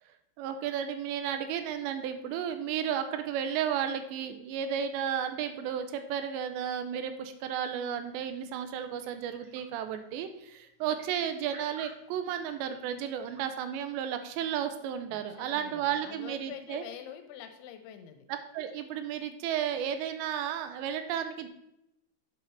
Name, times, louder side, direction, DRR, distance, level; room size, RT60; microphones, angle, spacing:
voice 1, 0.4-16.8 18.3-21.5, right 9 dB, 85° right, 8 dB, 2.7 m, -33 dB
sound 1, 8.1-13.5, right 3 dB, 60° right, 3.6 m, -57 dB
voice 2, 15.1-18.3, left 9 dB, 85° left, 7 dB, 3.2 m, -46 dB
7.9 x 4.4 x 5.6 m, 0.82 s
omnidirectional pair, 5.2 m